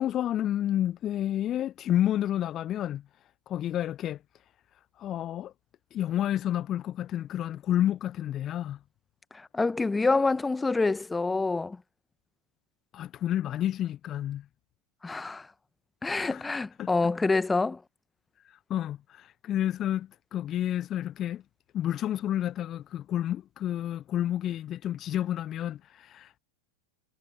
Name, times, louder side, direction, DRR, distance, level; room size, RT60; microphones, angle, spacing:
voice 1, 0.0-3.0 3.5-4.2 5.0-5.5 5.9-8.8 12.9-14.5 16.3-16.4 16.8-16.9 18.4-21.4 21.7-26.4, left 11 dB, 30° left, 0.4 m, -30 dB
voice 2, 9.3-11.8 15.0-15.5 16.0-17.8, left 3 dB, 10° left, 1.1 m, -27 dB
figure-of-eight pair, 90°, 0 cm